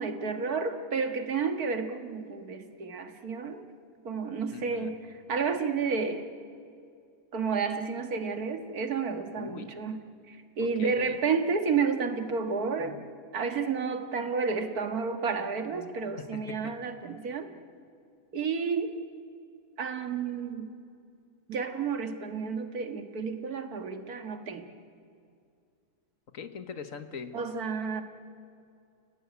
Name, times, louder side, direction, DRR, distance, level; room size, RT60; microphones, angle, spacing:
voice 1, 0.0-3.7 4.0-4.9 5.3-6.3 7.3-10.0 10.3-13.1 13.3-17.5 18.3-18.9 19.8-20.7 21.5-24.7 27.3-28.0, right 5 dB, 75° right, 7 dB, 2.1 m, -31 dB
voice 2, 4.5-4.9 9.4-9.7 10.6-11.2 16.2-16.7 26.3-27.4, left 6 dB, 60° left, 9 dB, 1.6 m, -41 dB
30.0 x 17.5 x 9.6 m, 2.4 s
omnidirectional pair, 1.6 m